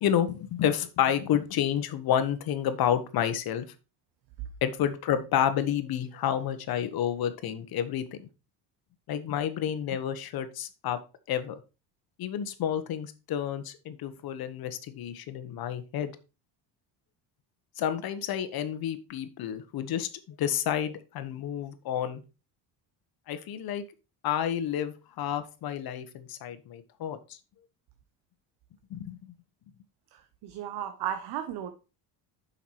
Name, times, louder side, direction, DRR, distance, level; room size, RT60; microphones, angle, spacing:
voice 1, 0.0-3.7 4.6-8.3 9.1-11.0 11.3-11.6 12.2-16.1 17.8-22.2 23.3-23.8 24.2-27.4 28.9-29.3, left 9 dB, 60° left, 1.3 m, -30 dB
voice 2, 30.1-31.7, right 10 dB, 65° right, 1.0 m, -35 dB
7.3 x 5.8 x 4.7 m
cardioid pair, 120°, 42 cm